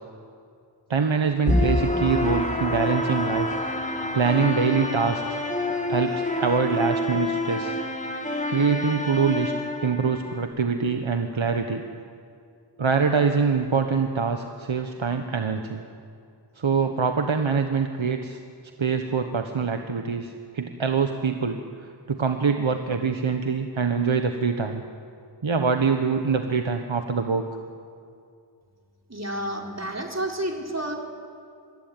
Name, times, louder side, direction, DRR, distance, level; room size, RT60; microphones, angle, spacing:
voice 1, 0.9-3.5 4.1-5.4 5.9-7.8 8.5-9.5 9.8-11.8 12.8-15.8 16.6-18.4 18.8-24.8 25.4-27.4, right 5 dB, 75° right, 5 dB, 1.3 m, -24 dB
sound 1, 1.5-10.4, left 1 dB, 15° left, 2.4 m, -27 dB
voice 2, 29.1-30.9, right 1 dB, 35° right, 0 dB, 4.2 m, -30 dB
24.0 x 22.5 x 9.1 m, 2.4 s
wide cardioid pair, 55°, 47 cm